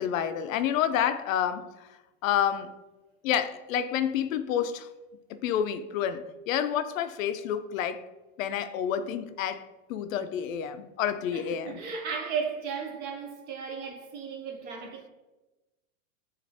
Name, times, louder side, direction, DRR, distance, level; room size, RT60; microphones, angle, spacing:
voice 1, 0.0-1.6 2.2-2.7 3.2-4.9 5.3-8.0 8.4-9.6 9.9-11.8, left 9 dB, 80° left, 0.5 m, -29 dB
voice 2, 11.3-15.1, right 6 dB, 25° right, 0.4 m, -35 dB
7.1 x 2.5 x 2.7 m
supercardioid pair, 145°, 39 cm